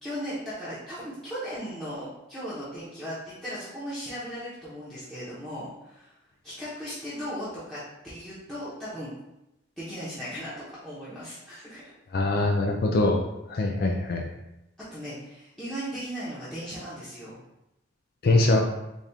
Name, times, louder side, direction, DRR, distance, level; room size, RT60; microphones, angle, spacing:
voice 1, 0.0-6.1 6.4-9.1 9.8-11.8 14.9-17.4, equal, ahead, -12 dB, 0.8 m, -37 dB
voice 2, 12.1-13.2 13.5-14.2 18.2-18.7, left 2 dB, 50° left, 1 dB, 0.4 m, -23 dB
4.1 x 2.4 x 3.4 m, 0.88 s
head